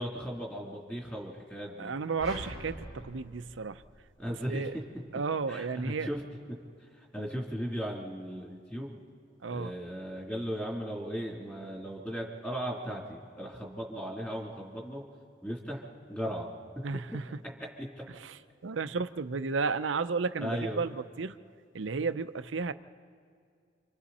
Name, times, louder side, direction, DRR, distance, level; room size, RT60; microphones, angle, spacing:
voice 1, 0.0-1.9 4.2-4.8 5.5-6.2 6.9-9.0 9.5-15.0 15.4-16.5 17.8-17.9 20.4-20.8, equal, 10° left, -1 dB, 3.2 m, -37 dB
voice 2, 1.8-3.8 4.5-4.7 5.1-6.1 9.4-9.7 16.8-17.2 18.2-18.3 18.6-21.4 21.7-22.7, right 4 dB, 90° right, 11 dB, 0.6 m, -33 dB
sound 1, 2.2-4.6, equal, 80° left, 5.8 m, -44 dB
29.5 x 25.5 x 4.2 m, 2.2 s
head